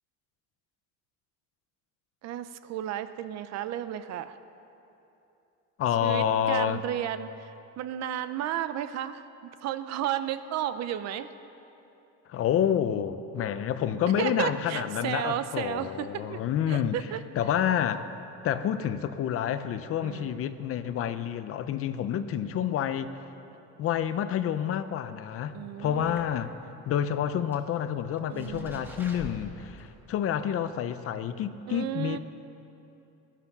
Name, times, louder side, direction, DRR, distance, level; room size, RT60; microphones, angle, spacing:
voice 1, 2.2-4.4 6.0-9.2 9.6-11.3 14.2-16.4 16.7-17.2 20.0-20.6 22.3-22.5 25.5-26.3 28.3-28.9 31.7-32.2, right 11 dB, 55° right, 12 dB, 0.7 m, -33 dB
voice 2, 5.8-6.8 12.3-17.0 17.4-18.0 18.4-23.1 23.8-26.5 26.9-32.2, left 9 dB, 45° left, 12 dB, 0.7 m, -28 dB
sound 1, 25.8-26.7 27.0-27.1 27.5-27.6 28.2-29.9 30.3-30.4 30.9-31.0, equal, 5° right, 1.5 m, -45 dB
19.5 x 12.0 x 6.0 m, 2.9 s
cardioid pair, 160°, 32 cm